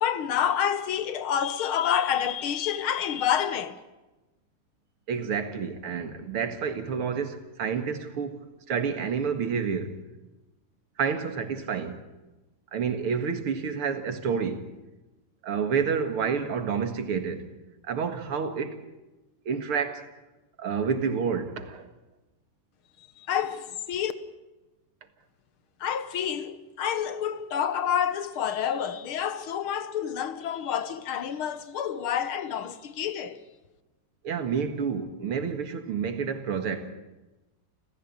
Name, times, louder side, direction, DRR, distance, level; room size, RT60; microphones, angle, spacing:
voice 1, 0.0-3.8 23.2-24.1 25.8-33.4, left 9 dB, 75° left, 2.1 m, -28 dB
voice 2, 5.1-10.0 11.0-12.0 12.7-14.8 15.4-17.5 17.8-18.8 19.5-20.1 20.6-21.9 34.2-36.9, right 6 dB, 90° right, 2.7 m, -29 dB
29.0 x 15.0 x 8.7 m
omnidirectional pair, 2.3 m